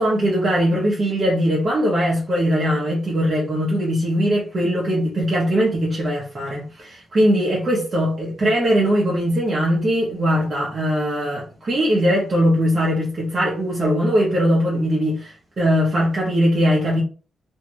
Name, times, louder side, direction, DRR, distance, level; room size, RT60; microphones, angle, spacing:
voice 1, 0.0-17.0, equal, 35° right, 0.8 m, -20 dB
2.6 x 2.3 x 3.0 m
wide cardioid pair, 155°, 0 cm